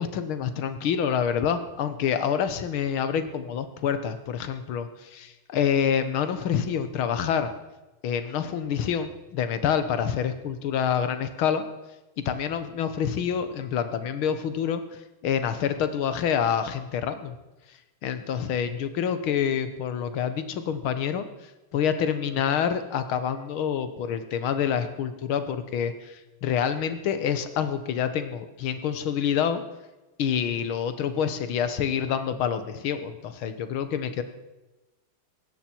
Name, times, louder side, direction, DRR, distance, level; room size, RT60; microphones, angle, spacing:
voice 1, 0.0-7.5 8.0-11.6 12.2-14.8 15.2-17.3 18.0-21.3 21.7-29.6 30.2-34.2, left 8 dB, 80° left, 10 dB, 2.0 m, -27 dB
19.0 x 16.0 x 4.5 m, 1.1 s
omnidirectional pair, 2.3 m